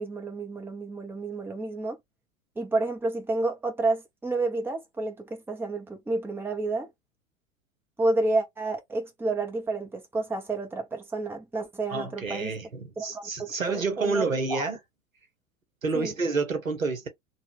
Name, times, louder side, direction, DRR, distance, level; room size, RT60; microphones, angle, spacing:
voice 1, 0.0-2.0 2.6-6.9 8.0-12.5 13.0-14.7 15.9-16.1, right 2 dB, 5° right, 0.9 m, -30 dB
voice 2, 11.9-14.8 15.8-17.1, right 4 dB, 85° right, 1.0 m, -29 dB
3.0 x 2.4 x 3.3 m
figure-of-eight pair, 85°, 39 cm